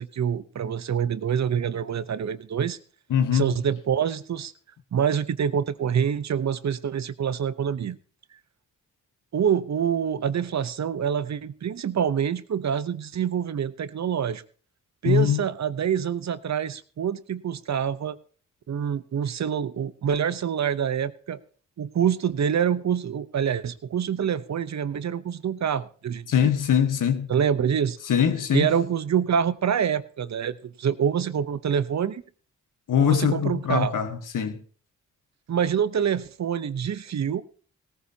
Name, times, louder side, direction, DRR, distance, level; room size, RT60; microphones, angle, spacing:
voice 1, 0.0-2.8 3.3-4.5 4.9-8.0 9.3-14.4 15.0-18.2 18.7-21.4 21.8-26.5 27.3-28.0 28.5-32.2 33.0-33.9 35.5-37.4, right 8 dB, 60° right, 0.8 m, -26 dB
voice 2, 3.1-3.5 15.0-15.4 26.3-27.3 28.1-28.7 32.9-34.6, left 8 dB, 80° left, 1.3 m, -22 dB
17.5 x 14.0 x 2.8 m
cardioid pair, 60°, 31 cm